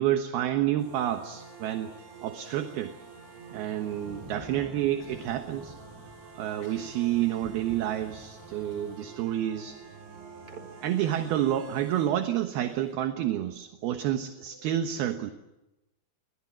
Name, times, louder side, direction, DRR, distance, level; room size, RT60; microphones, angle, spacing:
voice 1, 0.0-1.9 2.2-2.9 3.5-5.7 6.4-9.9 10.8-15.3, right 12 dB, 70° right, 7 dB, 2.9 m, -29 dB
sound 1, 0.8-12.1, right 5 dB, 85° right, 7.7 m, -48 dB
sound 2, 2.7-12.9, equal, 5° right, 4.1 m, -52 dB
Cough, 4.9-5.7 6.0-6.1 6.5-8.0 8.7-9.0 9.3-9.4 9.8-9.9 11.1-12.3, left 1 dB, 25° left, 4.9 m, -56 dB
voice 2, 10.1-10.8 13.1-13.3 13.8-14.2 14.5-14.8, right 4 dB, 30° right, 6 dB, 5.1 m, -52 dB
29.5 x 22.5 x 7.5 m, 0.93 s
omnidirectional pair, 5.2 m